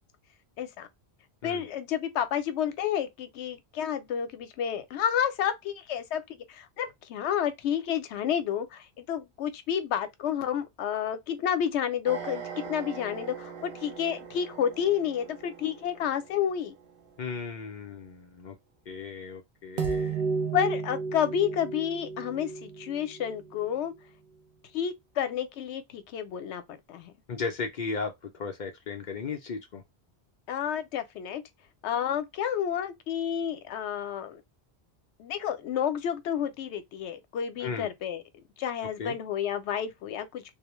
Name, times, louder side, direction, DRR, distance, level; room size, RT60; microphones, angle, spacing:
voice 1, 0.6-0.9 1.4-16.7 20.5-23.9 24.7-27.1 30.5-31.4 31.8-34.4 35.2-38.2 38.6-40.4, left 9 dB, 85° left, 0.9 m, -30 dB
sound 1, 12.1-16.4 19.8-23.7, right 5 dB, 60° right, 0.7 m, -35 dB
voice 2, 17.2-18.5 18.9-20.2 27.3-29.8 37.6-37.9 39.0-39.2, left 4 dB, 55° left, 0.5 m, -36 dB
2.7 x 2.0 x 3.0 m
omnidirectional pair, 1.1 m